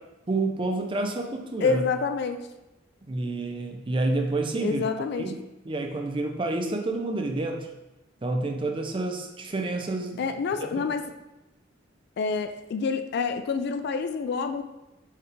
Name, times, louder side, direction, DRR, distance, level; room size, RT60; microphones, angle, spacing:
voice 1, 0.3-1.8 3.0-4.8 5.2-5.4 5.7-7.7 8.2-10.2 10.6-10.9, right 2 dB, 25° right, 4 dB, 0.4 m, -29 dB
voice 2, 1.6-2.4 4.6-5.3 10.2-11.0 12.2-14.6, left 5 dB, 55° left, 8 dB, 0.3 m, -27 dB
4.6 x 3.4 x 3.1 m, 0.96 s
head